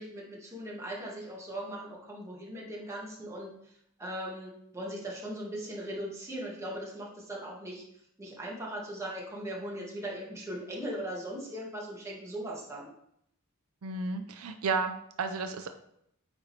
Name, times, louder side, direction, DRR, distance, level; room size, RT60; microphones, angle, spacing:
voice 1, 0.0-3.5 4.0-7.8 8.2-12.9, right 1 dB, 15° right, -4 dB, 1.6 m, -39 dB
voice 2, 13.8-15.7, right 4 dB, 85° right, 7 dB, 0.6 m, -32 dB
8.9 x 4.2 x 3.2 m, 0.73 s
head